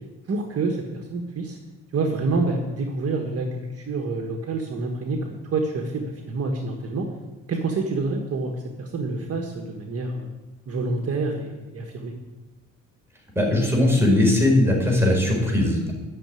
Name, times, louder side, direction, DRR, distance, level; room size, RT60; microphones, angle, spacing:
voice 1, 0.3-1.6 1.9-7.1 7.5-10.3 10.7-12.1, right 3 dB, 50° right, 2 dB, 1.5 m, -27 dB
voice 2, 13.3-15.9, left 1 dB, 10° right, -1 dB, 4.9 m, -19 dB
12.0 x 6.7 x 9.1 m, 1.2 s
cardioid pair, 90°, 30 cm